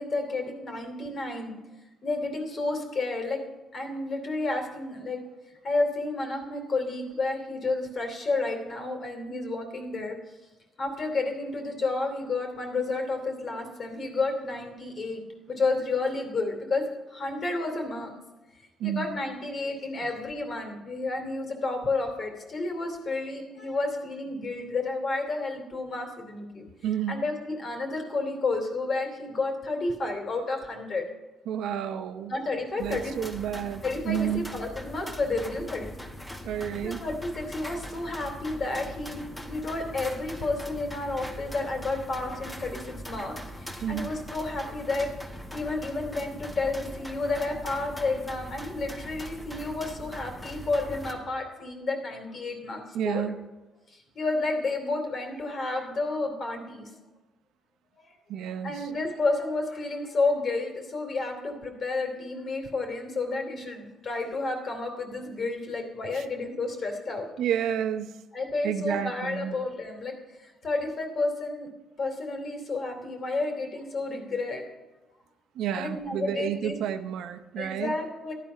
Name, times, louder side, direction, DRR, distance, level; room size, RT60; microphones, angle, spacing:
voice 1, 0.0-1.6 2.0-3.4 3.7-5.3 5.6-10.2 10.8-15.2 15.5-18.1 18.8-26.7 27.1-31.1 32.3-33.1 33.8-35.9 36.8-39.2 39.4-45.1 45.5-53.2 53.9-57.0 58.1-58.2 58.6-67.3 68.3-71.7 72.0-74.6 75.7-76.7 77.5-78.3, left 3 dB, 50° left, 4 dB, 3.2 m, -31 dB
voice 2, 26.8-27.2 31.5-32.4 32.8-34.4 36.4-37.0 43.8-44.2 52.9-53.4 58.3-58.9 66.1-66.2 67.4-68.2 68.6-69.6 75.5-77.9, right 9 dB, 85° right, 8 dB, 0.9 m, -30 dB
sound 1, 32.8-51.1, equal, 10° left, 2.0 m, -41 dB
14.0 x 11.0 x 5.8 m, 1.1 s
cardioid pair, 90°, 0 cm